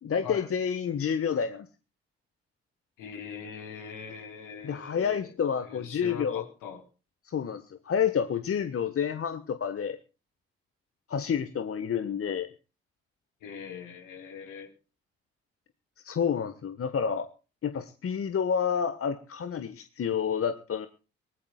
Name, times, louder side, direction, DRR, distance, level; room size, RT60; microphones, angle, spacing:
voice 1, 0.0-1.7 4.6-6.4 7.2-10.0 11.1-12.5 16.0-17.3 17.6-20.9, left 7 dB, 40° left, 11 dB, 1.4 m, -29 dB
voice 2, 3.0-5.3 5.6-6.8 13.4-14.7, left 6 dB, 65° left, 4 dB, 4.2 m, -42 dB
23.5 x 18.5 x 2.3 m, 0.34 s
figure-of-eight pair, 45°, 34 cm